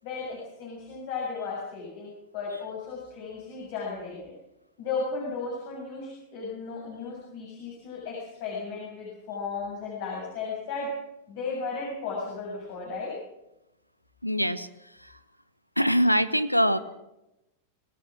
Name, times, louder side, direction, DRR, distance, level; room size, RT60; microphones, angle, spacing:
voice 1, 0.0-4.3 4.8-10.9 11.3-13.2, left 4 dB, 50° left, -2 dB, 7.3 m, -35 dB
voice 2, 14.2-14.7 15.0-15.1 15.8-16.8, equal, 90° left, 14 dB, 1.1 m, -23 dB
26.0 x 17.5 x 6.1 m, 0.91 s
figure-of-eight pair, 90°, 0 cm